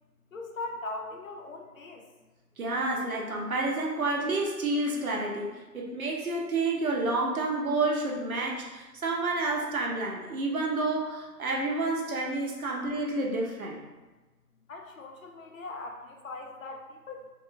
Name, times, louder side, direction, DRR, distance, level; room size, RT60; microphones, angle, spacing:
voice 1, 0.3-2.1 14.7-17.3, left 2 dB, 55° left, 2 dB, 0.5 m, -40 dB
voice 2, 2.6-13.8, right 2 dB, 60° right, -1 dB, 0.8 m, -29 dB
3.0 x 2.0 x 3.4 m, 1.2 s
figure-of-eight pair, 140°, 48 cm